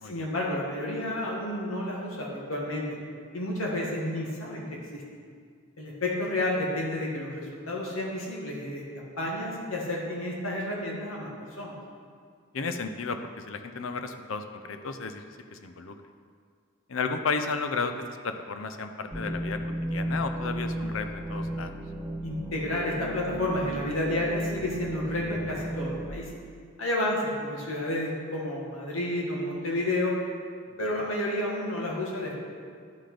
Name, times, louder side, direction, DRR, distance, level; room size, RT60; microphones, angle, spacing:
voice 1, 0.1-2.9 3.3-4.7 4.9-5.0 5.8-11.3 11.6-11.7 22.2-26.3 26.8-30.1 30.8-32.3, left 1 dB, 85° left, -3 dB, 1.9 m, -30 dB
voice 2, 12.5-15.2 15.5-16.0 16.9-19.6 19.9-21.7, left 4 dB, 70° left, 7 dB, 0.6 m, -33 dB
sound 1, 19.1-26.1, right 1 dB, 5° right, 0.7 m, -34 dB
10.5 x 5.9 x 5.0 m, 2.1 s
head